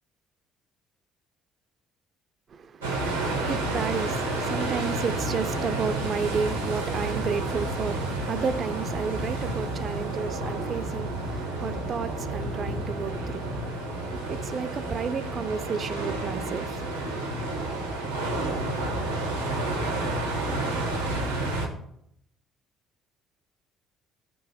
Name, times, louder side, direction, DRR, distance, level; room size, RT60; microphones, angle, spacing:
voice 1, 2.5-13.9 14.3-17.0, right 6 dB, 40° right, 0.5 m, -32 dB
sound 1, 2.8-21.7, right 2 dB, 85° right, 1.1 m, -30 dB
6.9 x 2.7 x 5.6 m
figure-of-eight pair, 50°, 0 cm